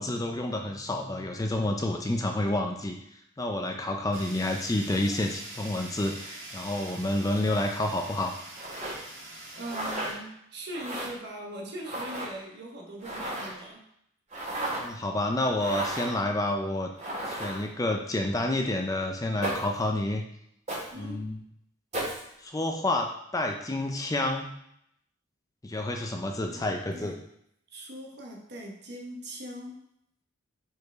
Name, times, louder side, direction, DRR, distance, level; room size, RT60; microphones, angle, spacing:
voice 1, 0.0-3.0 3.4-8.3 14.8-16.9 17.3-20.2 21.0-21.4 22.4-24.5 25.6-27.2, left 1 dB, 15° left, 3 dB, 0.5 m, -29 dB
Fire, 4.1-10.1, right 2 dB, 85° right, 2.2 m, -44 dB
sound 1, 8.6-8.9 9.6-10.1 10.7-11.1 11.8-12.3 13.0-13.6 14.3-14.9 15.6-16.2 17.0-17.7 19.4-19.8 20.7-20.9 21.9-22.2, right 1 dB, 35° right, 2.5 m, -34 dB
voice 2, 9.5-13.9 20.9-21.3 26.4-27.2 27.7-29.8, right 1 dB, 55° right, 0 dB, 1.2 m, -41 dB
4.9 x 4.6 x 4.6 m, 0.74 s
head